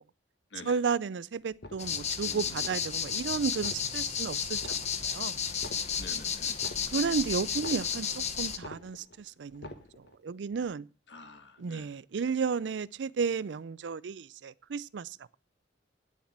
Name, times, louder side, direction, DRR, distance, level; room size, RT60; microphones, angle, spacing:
voice 1, 0.6-5.4 6.9-10.9 11.6-15.4, right 5 dB, 75° right, 0.4 m, -33 dB
sound 1, 1.5-2.2 2.5-3.2 3.5-4.2 4.5-5.2 5.5-8.2 8.5-9.2 9.5-10.2 10.5-10.6, left 1 dB, 65° left, 1.3 m, -47 dB
sound 2, 1.8-8.6, left 7 dB, 40° left, 1.0 m, -33 dB
voice 2, 2.2-2.6 3.1-3.3 6.0-6.6 11.1-11.9, left 3 dB, 80° left, 1.4 m, -48 dB
9.5 x 7.2 x 7.3 m
head